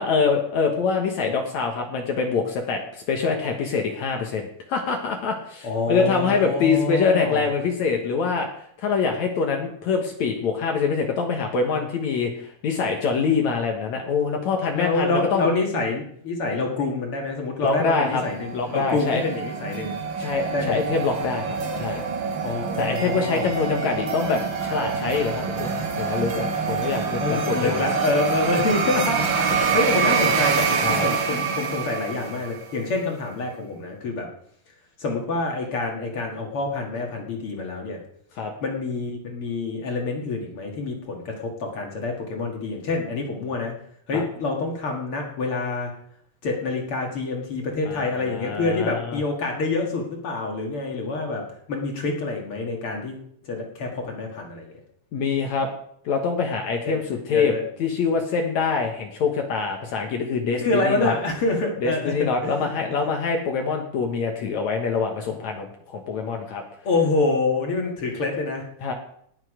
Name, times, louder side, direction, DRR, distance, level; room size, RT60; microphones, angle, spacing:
voice 1, 0.0-8.5 8.8-15.5 17.6-18.2 18.5-19.2 20.2-22.0 22.8-27.8 29.6-29.8 30.8-31.0 38.4-38.5 44.1-44.2 47.9-49.2 55.1-55.7 56.1-57.5 57.8-61.1 61.8-66.6 68.8-68.9, left 5 dB, 65° left, 2 dB, 2.5 m, -25 dB
voice 2, 5.6-7.5 14.7-20.0 20.5-20.8 22.4-23.5 27.2-34.3 35.0-38.0 38.6-43.7 44.1-45.9 46.4-51.4 51.7-53.2 53.4-54.7 56.9-57.0 57.3-57.6 60.5-62.1 62.4-62.5 66.8-68.6, left 3 dB, 45° left, 1 dB, 2.5 m, -26 dB
sound 1, 18.1-32.7, right 5 dB, 50° right, 1.5 m, -26 dB
19.0 x 7.3 x 5.0 m, 0.67 s
omnidirectional pair, 3.8 m